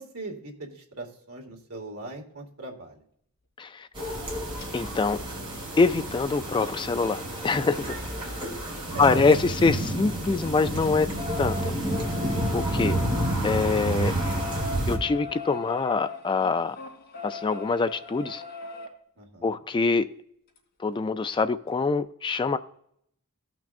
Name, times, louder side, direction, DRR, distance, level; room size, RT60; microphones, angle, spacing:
voice 1, 0.0-3.0 8.7-9.4 19.2-19.6, right 2 dB, 75° right, 2.2 m, -40 dB
sound 1, 3.9-15.0, right 1 dB, 25° right, 2.8 m, -30 dB
sound 2, 4.6-4.7 6.3-9.9 10.2-18.9 20.6-20.7 20.9-21.0 21.3-21.4, left 4 dB, 50° left, 3.2 m, -40 dB
voice 2, 4.7-5.2 5.8-8.0 9.0-11.1 11.4-11.7 12.5-12.9 13.4-14.1 14.9-16.8 17.2-18.4 19.4-20.1 20.8-22.6, left 4 dB, 20° left, 0.3 m, -24 dB
16.5 x 6.0 x 2.5 m
head